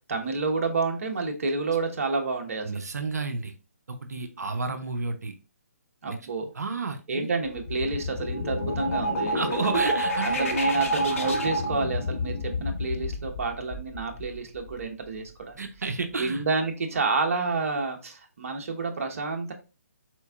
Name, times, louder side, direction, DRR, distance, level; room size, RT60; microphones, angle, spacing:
voice 1, 0.1-2.7 4.2-4.6 6.0-6.5 7.1-9.4 10.2-15.6 16.1-19.5, right 3 dB, 60° right, 3 dB, 1.1 m, -29 dB
voice 2, 2.6-3.5 3.9-5.3 6.1-6.2 6.5-7.3 9.3-10.5 15.6-16.4, right 4 dB, 80° right, 7 dB, 0.6 m, -31 dB
sound 1, 7.5-15.1, equal, 55° left, 1.2 m, -29 dB
4.5 x 4.4 x 2.3 m, 0.31 s
figure-of-eight pair, 145°, 9 cm